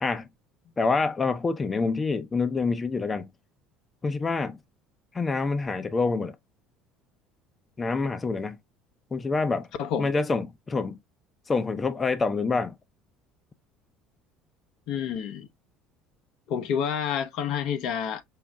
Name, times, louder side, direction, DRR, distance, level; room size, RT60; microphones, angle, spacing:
voice 1, 0.8-3.3 4.0-4.6 5.1-6.4 7.8-8.6 9.1-9.7 10.0-11.0 11.5-12.7, left 4 dB, 25° left, 0.6 m, -26 dB
voice 2, 14.9-15.5 16.5-18.2, left 8 dB, 65° left, 0.9 m, -29 dB
5.6 x 2.1 x 3.5 m
hypercardioid pair, 70°, 0 cm